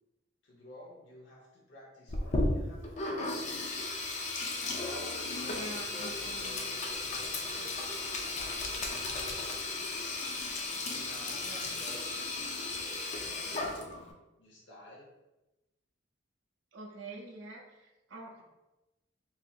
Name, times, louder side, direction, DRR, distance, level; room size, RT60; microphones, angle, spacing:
voice 1, 0.4-3.7 4.6-7.8 8.4-9.4 10.5-12.3 14.4-15.1, left 1 dB, 65° left, -4 dB, 0.9 m, -51 dB
Sink (filling or washing), 2.1-14.1, left 2 dB, 35° left, 0.5 m, -35 dB
voice 2, 5.5-6.7 11.4-11.7 16.7-18.4, right 2 dB, 70° right, -1 dB, 0.5 m, -46 dB
4.0 x 2.8 x 2.4 m, 1.0 s
head